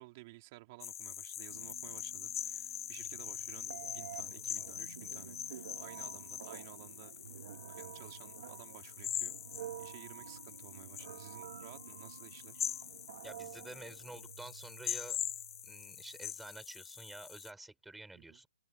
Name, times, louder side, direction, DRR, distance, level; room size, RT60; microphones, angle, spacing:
voice 1, 0.0-7.2 7.5-12.7 18.1-18.4, right 21 dB, 30° right, 3.7 m, -55 dB
sound 1, 0.8-17.5, left 10 dB, 50° left, 1.9 m, -43 dB
sound 2, 1.5-16.4, right 7 dB, 65° right, 4.7 m, -57 dB
Telephone, 3.1-14.3, right 12 dB, 45° right, 1.2 m, -51 dB
voice 2, 13.2-15.2 15.6-18.5, right 2 dB, 5° right, 5.1 m, -50 dB
hypercardioid pair, 160°, 3 cm